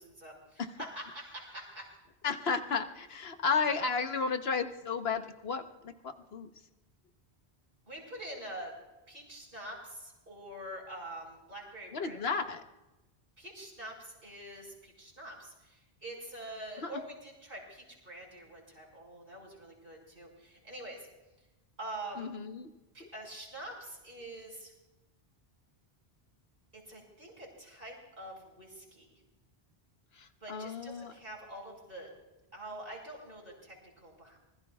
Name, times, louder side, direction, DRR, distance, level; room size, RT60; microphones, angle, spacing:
voice 1, 0.0-2.0 7.9-8.7 9.1-12.4 13.4-21.1 21.8-22.3 22.9-24.7 26.7-29.2 30.4-32.1 32.5-34.4, right 1 dB, 65° right, -2 dB, 5.8 m, -45 dB
voice 2, 2.2-6.5 11.9-12.6 16.8-17.0 22.2-22.7 23.0-23.1 30.1-31.1, left 5 dB, 75° left, 7 dB, 1.3 m, -33 dB
25.0 x 21.0 x 2.4 m, 1.0 s
omnidirectional pair, 1.0 m